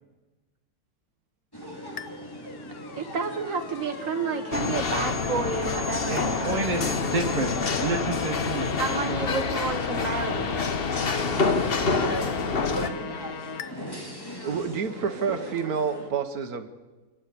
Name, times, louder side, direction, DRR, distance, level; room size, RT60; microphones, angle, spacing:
sound 1, 1.5-16.1, equal, 15° left, 2.8 m, -39 dB
sound 2, 2.0-13.7, left 6 dB, 75° left, 1.4 m, -39 dB
voice 1, 3.0-6.6 8.8-10.6, right 5 dB, 60° right, 6 dB, 1.9 m, -30 dB
sound 3, 4.5-12.9, left 4 dB, 45° left, 1.2 m, -27 dB
voice 2, 6.1-8.7, right 3 dB, 30° right, 2 dB, 1.6 m, -29 dB
voice 3, 14.4-16.7, right 6 dB, 80° right, 9 dB, 1.6 m, -28 dB
29.0 x 12.0 x 8.5 m, 1.2 s
omnidirectional pair, 1.6 m